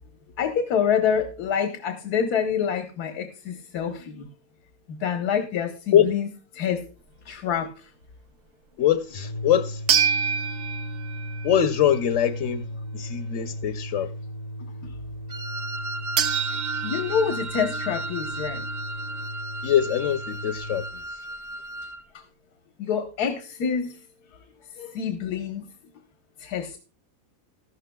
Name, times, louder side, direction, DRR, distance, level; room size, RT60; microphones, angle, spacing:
voice 1, 0.4-4.3 4.9-6.3 6.5-6.8 7.2-7.9 14.8-14.9 16.5-18.6 22.1-22.2 22.8-24.0 24.7-25.6 26.4-26.8, left 7 dB, 90° left, 1.6 m, -27 dB
voice 2, 8.8-9.8 11.4-12.6 12.9-14.1 19.6-20.9, left 10 dB, 60° left, 0.9 m, -22 dB
sound 1, 9.0-20.9, equal, 40° left, 0.6 m, -36 dB
sound 2, 9.9-11.9 16.2-19.3, right 8 dB, 75° right, 1.3 m, -28 dB
Wind instrument woodwind instrument, 15.3-22.0, right 1 dB, 60° right, 0.7 m, -35 dB
14.0 x 12.5 x 2.2 m
omnidirectional pair, 1.6 m